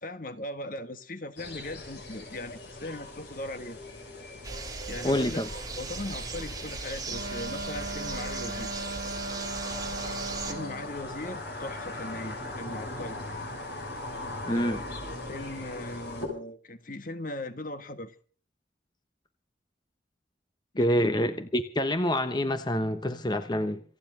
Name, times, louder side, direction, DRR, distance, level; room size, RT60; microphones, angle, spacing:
voice 1, 0.0-3.8 4.9-5.4 5.8-8.8 10.4-13.2 14.5-18.1 20.7-21.1, left 1 dB, 50° left, 1.5 m, -39 dB
sound 1, 1.4-16.3, left 2 dB, 65° left, 6.3 m, -40 dB
sound 2, 4.4-10.5, right 4 dB, 20° right, 2.9 m, -38 dB
voice 2, 5.0-5.5 14.5-14.8 20.8-23.8, equal, 25° left, 1.1 m, -27 dB
Wind instrument woodwind instrument, 7.1-10.9, right 2 dB, 85° right, 1.9 m, -38 dB
27.5 x 9.9 x 3.9 m
head